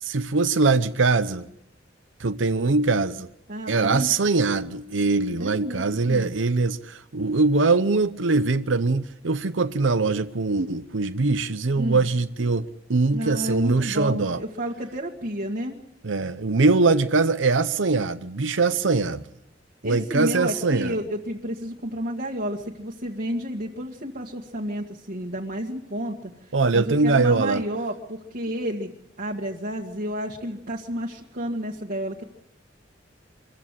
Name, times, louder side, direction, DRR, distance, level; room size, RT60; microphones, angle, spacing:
voice 1, 0.0-1.5 2.2-3.3 3.7-14.4 16.0-19.3 19.8-20.9 26.5-27.7, right 3 dB, 80° right, 0.8 m, -22 dB
voice 2, 3.5-4.1 5.4-6.3 11.8-12.0 13.1-15.7 19.8-26.3 26.7-28.9 29.2-32.2, equal, 55° right, 1.9 m, -31 dB
25.0 x 15.0 x 9.8 m
head